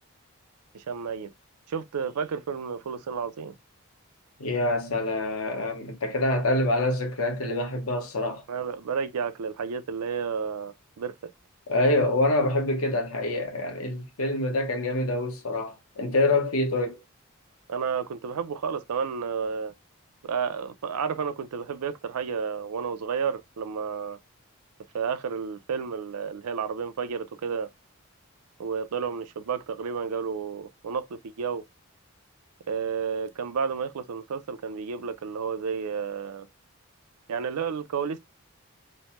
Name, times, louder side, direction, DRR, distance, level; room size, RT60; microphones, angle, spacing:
voice 1, 0.7-1.3 1.7-3.6 8.5-11.1 17.7-19.7 20.2-24.2 24.9-27.7 28.6-31.6 32.7-36.5 37.3-38.2, right 6 dB, 90° right, 0.4 m, -31 dB
voice 2, 4.4-8.4 11.7-17.0, left 2 dB, 75° left, 1.0 m, -26 dB
3.1 x 2.1 x 2.9 m
head